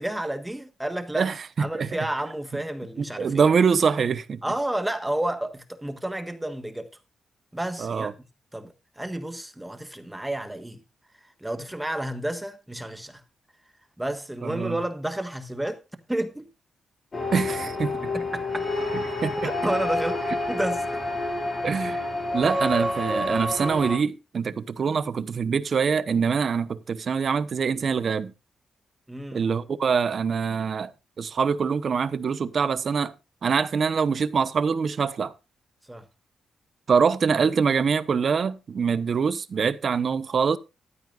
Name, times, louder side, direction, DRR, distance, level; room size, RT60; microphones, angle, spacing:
voice 1, 0.0-1.3 1.6-3.5 4.4-6.9 7.5-8.1 8.5-10.8 11.4-13.2 14.0-15.8 16.1-16.5 18.1-18.7 19.4-20.2 20.5-20.8 29.1-29.4 35.9-36.0, right 1 dB, 5° right, 1.3 m, -31 dB
voice 2, 3.0-4.4 7.8-8.1 14.4-14.8 17.3-17.9 19.2-19.5 21.6-22.1 22.3-28.3 29.3-30.9 31.2-33.1 33.4-35.3 36.9-40.6, right 6 dB, 45° right, 0.9 m, -24 dB
sound 1, 17.1-24.0, left 1 dB, 30° left, 5.1 m, -28 dB
15.5 x 12.5 x 2.5 m
wide cardioid pair, 145°, 0 cm